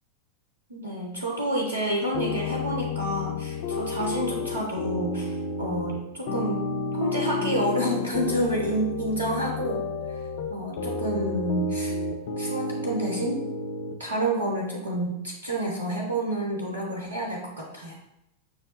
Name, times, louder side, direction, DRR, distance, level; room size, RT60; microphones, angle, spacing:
voice 1, 0.7-6.6 6.9-9.9 10.5-12.0 12.4-13.4 14.0-18.0, right 1 dB, 75° right, -1 dB, 0.7 m, -29 dB
sound 1, 2.1-13.9, left 3 dB, 55° left, 0.4 m, -31 dB
6.0 x 2.1 x 3.0 m, 0.85 s
figure-of-eight pair, 90°, 0 cm